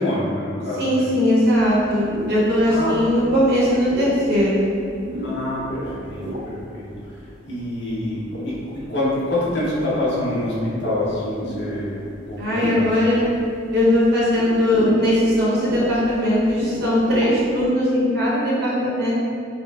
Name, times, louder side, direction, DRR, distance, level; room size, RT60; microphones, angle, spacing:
voice 1, 0.0-1.2 2.7-2.9 5.2-7.2 7.4-12.9, left 1 dB, 60° left, -7 dB, 0.9 m, -26 dB
voice 2, 0.8-4.7 12.4-13.2 13.7-19.1, left 1 dB, 55° right, -8 dB, 1.0 m, -19 dB
sound 1, 1.5-17.7, equal, 80° right, 0.7 m, -34 dB
5.2 x 2.1 x 2.3 m, 2.5 s
head